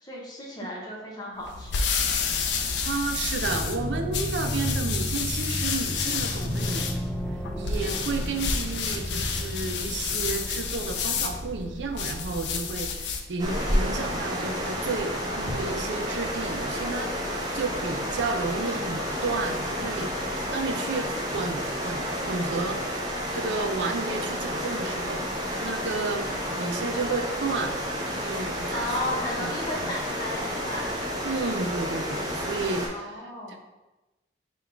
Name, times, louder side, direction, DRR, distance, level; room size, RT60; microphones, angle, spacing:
voice 1, 0.0-1.9 28.7-30.9 32.8-33.6, left 1 dB, 20° left, -3 dB, 0.8 m, -34 dB
sound 1, 1.4-13.3, left 5 dB, 70° left, 0.4 m, -30 dB
sound 2, 2.0-12.1, equal, 5° left, 0.3 m, -35 dB
voice 2, 2.8-6.9 7.6-17.2 17.5-20.1 20.5-22.8 23.3-25.2 25.6-27.8 28.2-29.9 31.2-33.6, right 3 dB, 80° right, 6 dB, 0.5 m, -32 dB
sound 3, 13.4-32.9, equal, 20° right, 0.8 m, -30 dB
4.0 x 2.3 x 4.3 m, 1.0 s
head